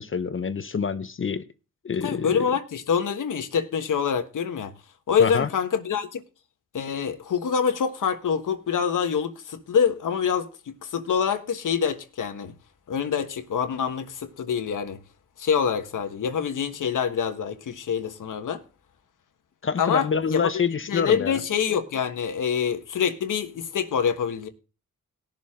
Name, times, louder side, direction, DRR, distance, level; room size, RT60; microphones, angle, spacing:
voice 1, 0.0-1.5 1.8-2.4 5.2-5.5 19.6-21.4, left 6 dB, 40° left, 0.8 m, -27 dB
voice 2, 2.0-4.7 5.1-6.2 6.7-12.5 12.9-15.0 15.4-18.6 19.8-24.5, left 7 dB, 70° left, 1.5 m, -26 dB
18.0 x 7.1 x 3.7 m
cardioid pair, 80°, 32 cm